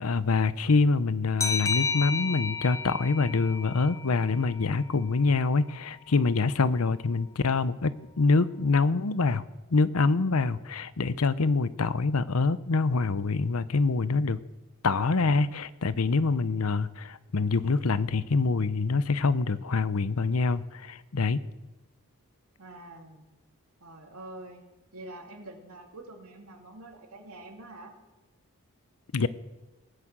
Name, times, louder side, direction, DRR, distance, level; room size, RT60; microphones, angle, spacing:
voice 1, 0.0-9.4 9.7-14.4 14.8-21.4 29.1-29.3, left 3 dB, 80° left, 16 dB, 0.7 m, -25 dB
sound 1, 1.4-4.7, left 4 dB, 15° left, 0.6 m, -32 dB
voice 2, 22.6-23.3 23.8-24.6 24.9-28.0, right 2 dB, 90° right, 3 dB, 2.7 m, -46 dB
18.5 x 10.0 x 7.5 m, 1.1 s
head